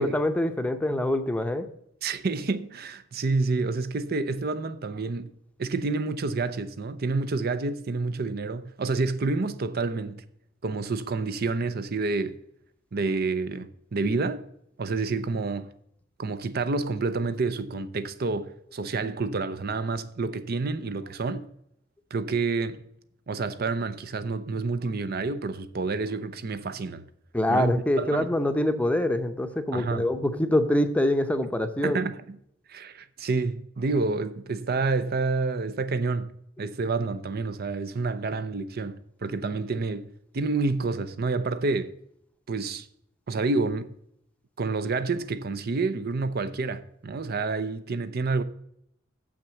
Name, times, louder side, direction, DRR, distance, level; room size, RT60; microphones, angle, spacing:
voice 1, 0.0-1.7 27.3-32.0, left 1 dB, 5° left, 0.7 m, -25 dB
voice 2, 2.0-5.3 5.6-10.2 10.6-12.4 12.9-14.4 14.8-15.7 16.2-21.4 22.1-22.8 23.3-27.0 27.5-28.3 29.7-30.1 31.8-32.4 32.7-40.1 40.3-41.9 42.5-42.9 43.3-43.9 44.6-48.4, right 3 dB, 50° right, 0.6 m, -28 dB
7.1 x 6.0 x 7.7 m
head